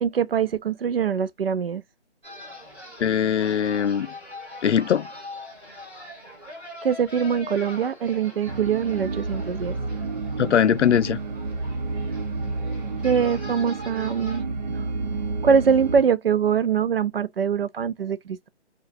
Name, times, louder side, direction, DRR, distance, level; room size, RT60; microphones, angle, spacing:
voice 1, 0.0-1.8 6.8-9.7 13.0-14.4 14.7-14.9 15.4-18.5, right 7 dB, 60° right, 0.6 m, -23 dB
sound 1, 2.2-14.4, left 1 dB, 5° right, 1.5 m, -42 dB
voice 2, 3.0-4.1 4.6-5.1 10.4-11.2, left 8 dB, 90° left, 0.5 m, -21 dB
sound 2, 8.5-16.0, right 3 dB, 40° right, 0.9 m, -30 dB
5.1 x 2.4 x 2.6 m
figure-of-eight pair, 160°, 34 cm